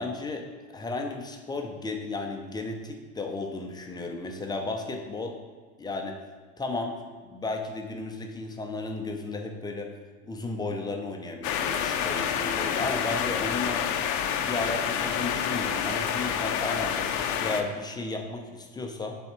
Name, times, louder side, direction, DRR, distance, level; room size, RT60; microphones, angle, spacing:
voice 1, 0.0-5.4 5.8-6.2 6.6-9.9 10.2-13.9 14.4-19.2, left 3 dB, 10° left, 3 dB, 0.5 m, -34 dB
sound 1, 11.4-17.6, left 8 dB, 50° left, 0.6 m, -28 dB
7.5 x 3.5 x 4.3 m, 1.5 s
supercardioid pair, 125°, 38 cm